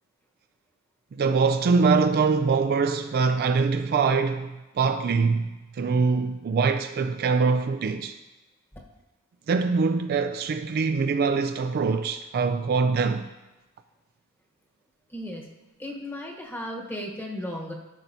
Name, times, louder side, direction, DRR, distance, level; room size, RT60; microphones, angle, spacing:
voice 1, 1.1-8.2 9.5-13.3, right 4 dB, 45° right, 0.3 m, -23 dB
voice 2, 15.1-15.5 15.8-17.7, left 1 dB, 10° left, 1.1 m, -35 dB
13.0 x 5.6 x 2.7 m
head